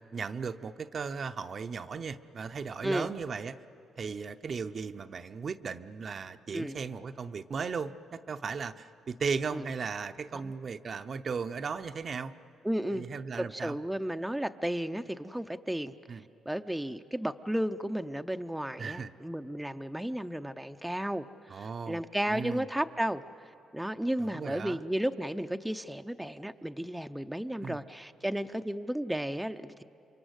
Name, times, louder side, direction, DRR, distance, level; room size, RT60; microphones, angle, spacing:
voice 1, 0.1-3.6 4.0-12.3 12.9-13.8 16.1-16.3 18.8-19.1 21.5-22.7 24.2-24.8 27.6-27.8, right 5 dB, 45° right, 9 dB, 0.7 m, -36 dB
voice 2, 12.6-13.1 13.4-15.9 16.5-21.3 21.5-23.2 23.7-29.8, right 1 dB, 5° right, 7 dB, 0.6 m, -33 dB
28.5 x 24.0 x 8.1 m, 2.8 s
cardioid pair, 90°, 0 cm